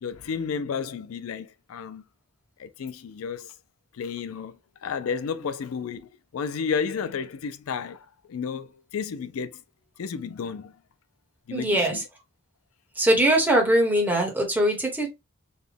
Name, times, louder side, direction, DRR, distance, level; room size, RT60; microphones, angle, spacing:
voice 1, 0.0-2.0 2.6-3.5 3.9-9.6 10.0-10.8 11.5-12.0, left 6 dB, 75° left, 0.4 m, -32 dB
voice 2, 11.5-12.0 12.9-15.1, right 1 dB, 10° right, 1.1 m, -21 dB
4.0 x 2.2 x 3.3 m
head